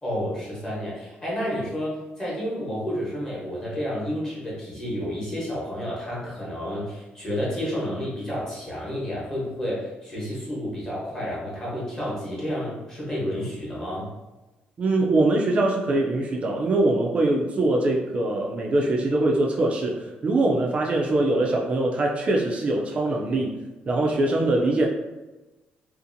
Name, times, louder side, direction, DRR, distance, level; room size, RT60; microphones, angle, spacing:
voice 1, 0.0-14.1, equal, 20° left, -7 dB, 1.0 m, -30 dB
voice 2, 14.8-23.6 23.9-24.9, right 2 dB, 35° right, -1 dB, 0.3 m, -23 dB
2.6 x 2.4 x 2.6 m, 1.1 s
cardioid pair, 160°, 4 cm